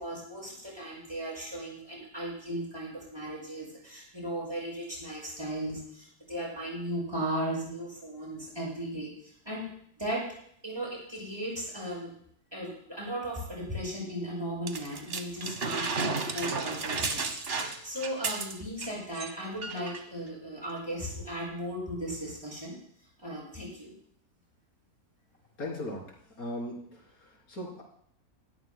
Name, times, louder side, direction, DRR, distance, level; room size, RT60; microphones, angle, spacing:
voice 1, 0.0-9.7 10.0-10.3 10.6-12.1 12.5-22.8 23.2-23.9, right 1 dB, 15° right, -5 dB, 6.8 m, -36 dB
sound 1, 14.7-18.9 19.1-19.3 19.6-20.0 20.8-20.9, right 4 dB, 45° right, 1.2 m, -33 dB
voice 2, 25.6-26.0 26.4-27.8, left 1 dB, 70° left, -1 dB, 3.8 m, -38 dB
20.0 x 14.0 x 2.2 m, 0.66 s
omnidirectional pair, 1.6 m